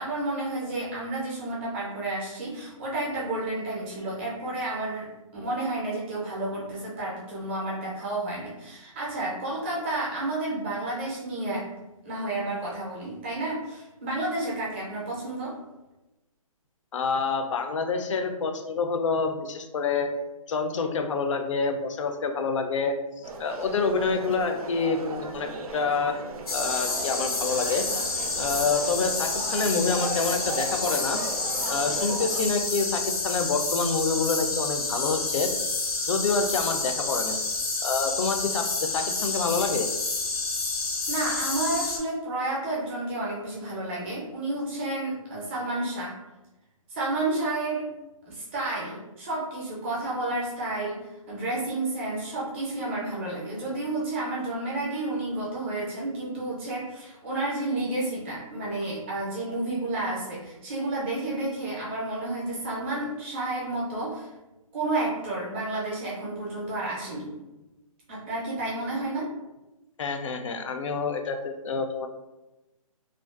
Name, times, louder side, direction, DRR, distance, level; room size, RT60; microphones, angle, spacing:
voice 1, 0.0-11.7 12.0-15.6 41.1-46.1 46.9-47.8 48.3-64.3 64.7-67.3 68.1-69.3, right 2 dB, 20° right, -6 dB, 0.5 m, -31 dB
voice 2, 16.9-20.1 20.5-26.2 26.5-27.8 28.3-31.2 31.7-35.5 36.1-37.4 37.8-39.9 70.0-72.1, left 4 dB, 60° left, 5 dB, 0.4 m, -27 dB
sound 1, 23.2-32.5, right 4 dB, 85° right, 0.4 m, -37 dB
sound 2, 26.5-42.0, left 3 dB, 90° left, 0.7 m, -29 dB
2.4 x 2.2 x 2.3 m, 1.0 s
hypercardioid pair, 160°, 18 cm